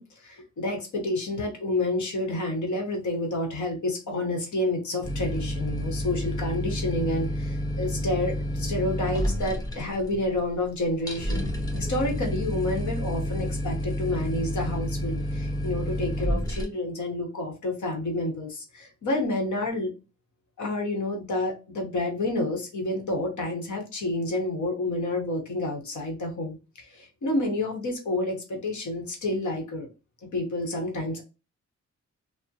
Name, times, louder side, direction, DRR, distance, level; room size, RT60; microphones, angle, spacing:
voice 1, 0.0-11.4 11.7-19.9 20.6-29.9 30.3-31.2, left 2 dB, 75° left, 1 dB, 1.0 m, -29 dB
sound 1, 5.0-16.6, equal, 15° left, 0.6 m, -30 dB
3.4 x 2.0 x 2.7 m, 0.30 s
wide cardioid pair, 150°, 29 cm